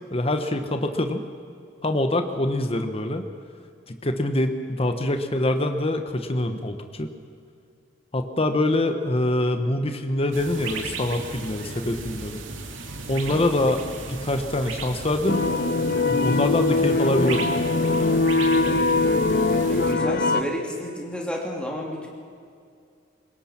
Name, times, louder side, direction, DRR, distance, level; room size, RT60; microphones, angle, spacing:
voice 1, 0.1-1.2 1.8-3.2 3.9-7.1 8.1-12.4 13.1-13.8 14.1-15.4 16.1-17.6, left 1 dB, 30° left, 7 dB, 1.2 m, -24 dB
sound 1, 10.3-20.0, right 3 dB, 85° right, 2.4 m, -36 dB
sound 2, 15.3-20.4, left 3 dB, 55° left, 0.9 m, -22 dB
voice 2, 19.7-22.1, equal, 5° left, -1 dB, 3.0 m, -31 dB
24.5 x 21.0 x 6.0 m, 2.3 s
head